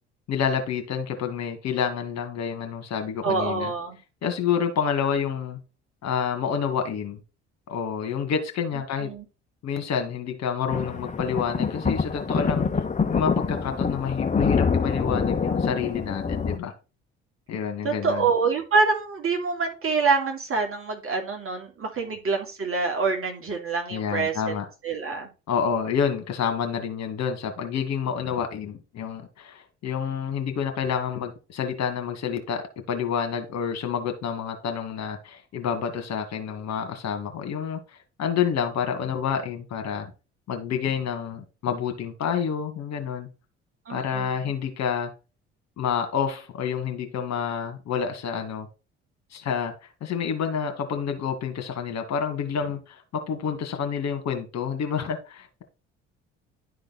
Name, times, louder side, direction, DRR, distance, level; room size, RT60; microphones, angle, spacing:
voice 1, 0.3-3.7 4.2-5.6 6.0-7.2 7.7-9.1 9.6-12.7 13.1-16.7 17.5-18.3 22.0-22.1 23.9-24.7 25.5-37.8 38.2-40.1 40.5-43.3 43.9-45.1 45.8-48.7 49.3-49.7 50.0-55.6, left 7 dB, 55° left, 4 dB, 1.8 m, -28 dB
voice 2, 3.2-4.0 9.0-9.2 17.8-24.5 24.8-25.3 43.9-44.5, right 4 dB, 40° right, 3 dB, 2.7 m, -26 dB
sound 1, 10.7-16.6, left 5 dB, 20° left, 1.0 m, -25 dB
11.0 x 3.9 x 4.1 m, 0.31 s
hypercardioid pair, 55°, 32 cm